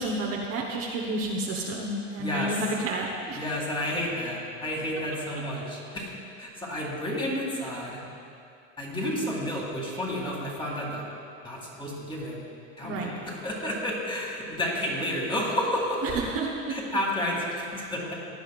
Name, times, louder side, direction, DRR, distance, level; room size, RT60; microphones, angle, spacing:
voice 1, 0.0-3.4 12.8-13.1 16.0-16.8, right 2 dB, 40° right, -1 dB, 1.1 m, -30 dB
voice 2, 2.2-2.5 3.4-6.1 6.4-8.0 8.8-11.0 11.4-12.4 12.8-16.0 16.7-18.1, left 1 dB, 15° left, -3 dB, 2.4 m, -31 dB
16.5 x 9.8 x 2.4 m, 2.5 s
supercardioid pair, 130°, 36 cm